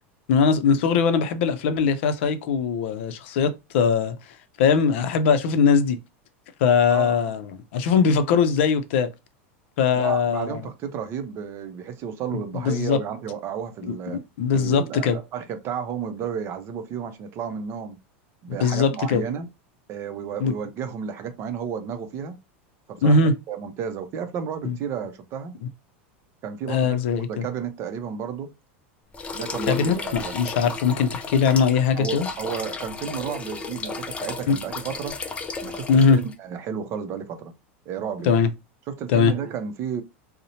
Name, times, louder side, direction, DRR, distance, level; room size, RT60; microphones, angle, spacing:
voice 1, 0.3-4.2 4.6-6.0 6.6-9.1 9.8-10.7 12.3-13.0 13.9-14.0 14.4-15.2 18.6-19.2 20.4-20.5 23.0-23.3 24.6-24.8 26.7-27.4 29.7-32.3 34.5-34.6 35.9-36.2 38.2-38.5 39.1-39.3, left 5 dB, 70° left, 0.5 m, -21 dB
voice 2, 6.9-7.3 9.9-14.2 14.5-18.0 18.4-19.5 19.9-22.4 22.9-23.2 23.5-25.6 26.4-27.0 27.3-28.5 29.3-30.4 31.9-35.2 35.6-37.5 37.9-38.4 38.9-40.0, right 7 dB, 40° right, 0.5 m, -32 dB
sound 1, 29.1-36.3, left 4 dB, 20° left, 0.4 m, -34 dB
2.7 x 2.0 x 2.7 m
supercardioid pair, 125°, 7 cm